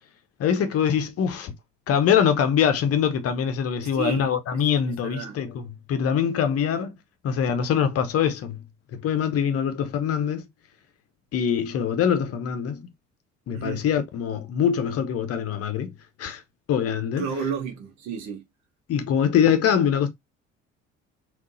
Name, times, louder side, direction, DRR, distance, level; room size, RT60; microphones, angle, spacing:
voice 1, 0.4-1.5 1.9-5.6 5.9-7.0 7.2-8.6 8.9-10.5 11.3-12.9 13.5-15.9 16.2-16.4 16.7-17.2 18.9-20.1, left 8 dB, 40° left, 0.8 m, -23 dB
voice 2, 3.8-4.6 5.0-5.4 13.5-13.9 17.2-18.4, right 7 dB, 50° right, 1.0 m, -32 dB
3.7 x 2.5 x 2.5 m
figure-of-eight pair, 50°, 37 cm